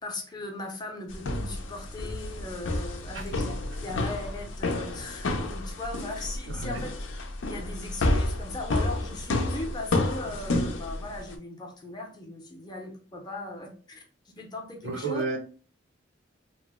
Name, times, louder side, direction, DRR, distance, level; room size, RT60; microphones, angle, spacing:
voice 1, 0.0-3.5 3.8-6.9 7.5-14.0 14.3-15.2, left 2 dB, 20° left, 2 dB, 0.6 m, -38 dB
sound 1, 1.1-11.3, left 2 dB, 85° left, 0.6 m, -30 dB
voice 2, 6.5-6.8 14.8-15.4, right 3 dB, 80° right, 4 dB, 0.7 m, -31 dB
2.9 x 2.0 x 3.5 m, 0.38 s
head